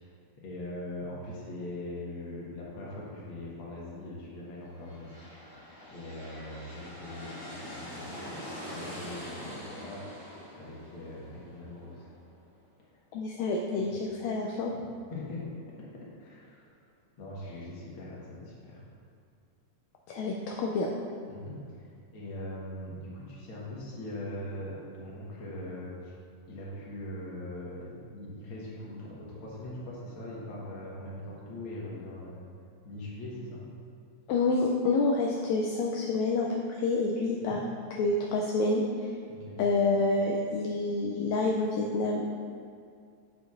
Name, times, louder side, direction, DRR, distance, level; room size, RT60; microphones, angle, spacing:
voice 1, 0.4-5.1 5.5-5.6 5.9-10.1 10.6-12.1 15.1-15.4 15.8-16.7 17.2-18.8 21.3-26.1 26.5-32.4 32.8-33.6 37.4-37.6 39.3-39.6, left 1 dB, 50° left, -6 dB, 1.9 m, -41 dB
sound 1, 4.7-12.4, equal, 30° left, 1.8 m, -44 dB
voice 2, 13.1-14.7 20.1-20.9 34.3-36.5 36.8-37.6 38.0-38.8 39.6-42.3, left 3 dB, 80° left, -1 dB, 1.7 m, -28 dB
8.3 x 7.1 x 2.5 m, 2.3 s
omnidirectional pair, 3.5 m